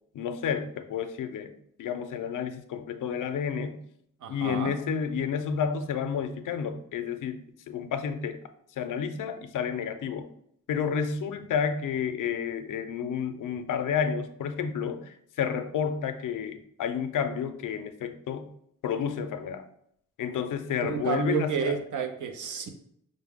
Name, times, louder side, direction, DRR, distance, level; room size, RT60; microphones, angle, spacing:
voice 1, 0.1-1.5 1.8-3.8 4.3-8.4 8.8-10.3 10.7-18.5 18.8-19.6 20.2-21.6, left 7 dB, 85° left, 9 dB, 0.5 m, -30 dB
voice 2, 4.2-4.8 20.8-22.7, right 6 dB, 80° right, 5 dB, 0.6 m, -30 dB
5.3 x 2.0 x 3.5 m, 0.71 s
wide cardioid pair, 165°, 31 cm